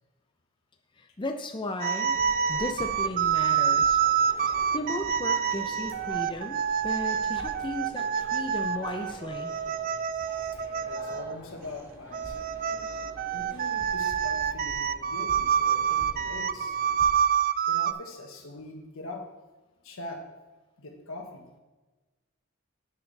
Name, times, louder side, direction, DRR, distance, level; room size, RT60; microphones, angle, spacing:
voice 1, 1.0-2.2 2.5-4.4 4.7-9.5, left 1 dB, 25° left, 4 dB, 0.6 m, -35 dB
sound 1, 1.8-11.4 12.1-17.9, right 8 dB, 45° right, 0.3 m, -27 dB
sound 2, 2.0-17.1, equal, 10° right, 2.7 m, -47 dB
voice 2, 10.8-12.5 13.3-16.8 17.7-19.3 19.8-20.2 20.8-21.5, left 2 dB, 85° left, 2 dB, 1.5 m, -42 dB
10.5 x 7.1 x 3.4 m, 1.2 s
head